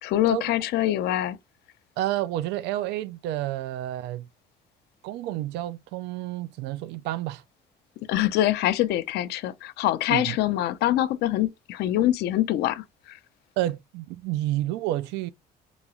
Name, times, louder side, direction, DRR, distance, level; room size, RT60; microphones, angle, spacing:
voice 1, 0.0-1.4 8.1-13.2, left 13 dB, 75° left, 0.5 m, -24 dB
voice 2, 2.0-4.3 5.0-7.4 10.1-10.4 13.6-15.3, right 14 dB, 90° right, 0.4 m, -30 dB
3.9 x 2.3 x 2.9 m
cardioid pair, 110°, 17 cm